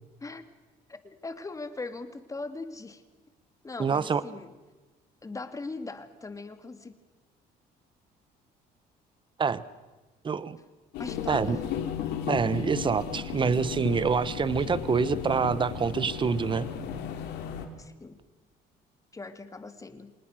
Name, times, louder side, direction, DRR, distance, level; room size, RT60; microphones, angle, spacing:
voice 1, 0.9-3.0 3.6-4.5 5.2-6.9 11.0-11.6 17.8-18.2 19.1-20.1, left 3 dB, 20° left, 10 dB, 2.0 m, -40 dB
voice 2, 3.8-4.2 9.4-9.6 10.2-10.6 11.3-11.6 12.3-16.7, right 5 dB, 30° right, 17 dB, 1.0 m, -26 dB
sound 1, 10.9-17.7, left 7 dB, 90° left, 3.0 m, -34 dB
27.0 x 19.5 x 6.4 m, 1.2 s
cardioid pair, 110°, 17 cm